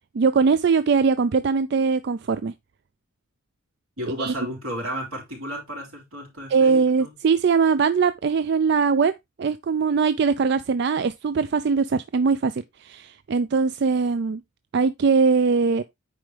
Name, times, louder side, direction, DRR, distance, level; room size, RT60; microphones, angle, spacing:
voice 1, 0.1-2.5 4.2-4.3 6.5-9.1 9.4-14.4 14.7-15.8, right 5 dB, 55° right, 0.4 m, -21 dB
voice 2, 4.0-7.1, equal, 85° right, 4.0 m, -33 dB
9.3 x 4.5 x 3.4 m
head